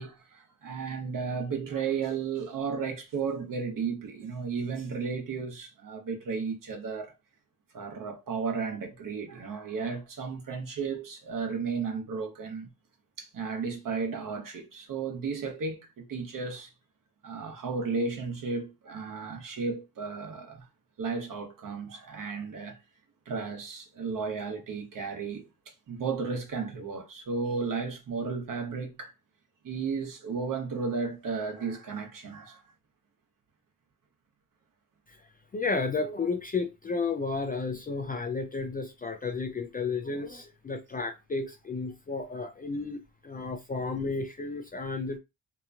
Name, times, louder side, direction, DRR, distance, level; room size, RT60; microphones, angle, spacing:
voice 1, 0.0-7.1 7.7-12.7 13.2-16.7 17.2-20.7 21.0-22.8 23.3-25.5 25.9-29.1 29.6-32.6, right 5 dB, 50° right, 1.0 m, -34 dB
voice 2, 35.5-45.2, left 4 dB, 20° left, 0.4 m, -32 dB
2.9 x 2.2 x 2.5 m
supercardioid pair, 65°, 42 cm